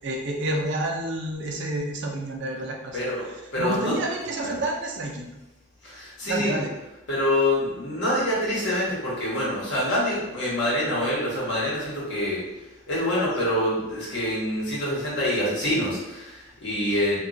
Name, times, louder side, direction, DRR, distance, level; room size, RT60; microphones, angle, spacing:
voice 1, 0.0-3.0 3.6-5.3 6.2-6.7, right 1 dB, 55° right, 1 dB, 0.4 m, -29 dB
voice 2, 2.9-3.2 3.5-4.0 4.4-4.6 5.8-6.6 7.1-12.4 12.9-17.2, left 1 dB, 60° left, -7 dB, 1.1 m, -26 dB
2.8 x 2.3 x 2.5 m, 0.98 s
head